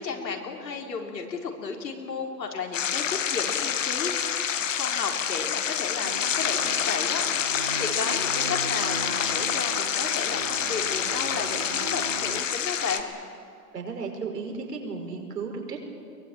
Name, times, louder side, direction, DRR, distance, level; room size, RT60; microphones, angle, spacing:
voice 1, 0.0-4.1 4.7-13.1, left 5 dB, 85° left, 2 dB, 4.1 m, -33 dB
sound 1, 2.7-13.0, left 8 dB, 50° left, 1.6 m, -27 dB
sound 2, 6.0-12.4, right 3 dB, 25° right, 0.5 m, -38 dB
voice 2, 13.7-15.8, right 4 dB, 70° right, 2 dB, 5.6 m, -34 dB
23.0 x 19.5 x 9.0 m, 2.4 s
hypercardioid pair, 170°, 49 cm